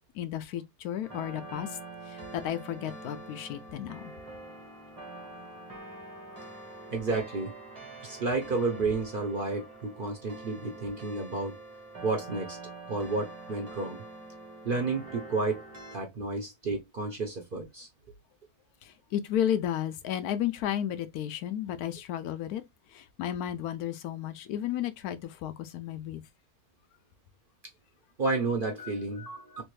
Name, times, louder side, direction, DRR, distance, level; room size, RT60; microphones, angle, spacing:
voice 1, 0.1-1.8 2.1-4.1 18.8-22.6 22.9-26.2, left 10 dB, 80° left, 1.1 m, -33 dB
sound 1, 1.0-16.0, right 2 dB, 30° right, 1.0 m, -45 dB
voice 2, 6.9-7.5 8.0-11.5 12.0-12.6 12.9-14.0 14.6-15.6 15.9-17.9 28.2-29.6, right 3 dB, 45° right, 0.7 m, -31 dB
3.2 x 2.5 x 3.1 m
omnidirectional pair, 1.6 m